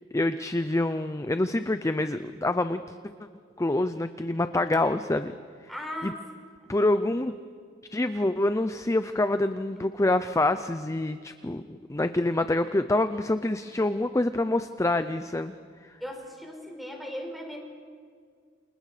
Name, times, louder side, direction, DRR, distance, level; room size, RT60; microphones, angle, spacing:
voice 1, 0.1-2.8 3.6-5.3 6.0-6.1 6.7-7.3 7.9-11.6 11.9-15.5, left 2 dB, 15° left, 10 dB, 0.5 m, -26 dB
voice 2, 5.7-6.2 6.6-6.7 16.0-17.6, equal, ahead, 1 dB, 4.4 m, -37 dB
29.5 x 27.5 x 5.0 m, 2.1 s
head